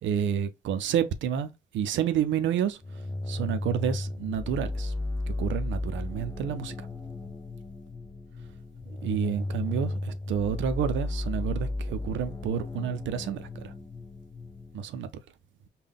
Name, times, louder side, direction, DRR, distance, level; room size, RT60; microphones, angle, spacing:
voice 1, 0.0-1.5 1.7-2.8 3.3-4.9 5.3-6.7 8.9-13.7 14.7-15.1, right 8 dB, 70° right, 0.5 m, -29 dB
sound 1, 2.8-14.8, left 2 dB, 15° left, 0.4 m, -34 dB
3.7 x 2.2 x 3.5 m
cardioid pair, 90°, 20 cm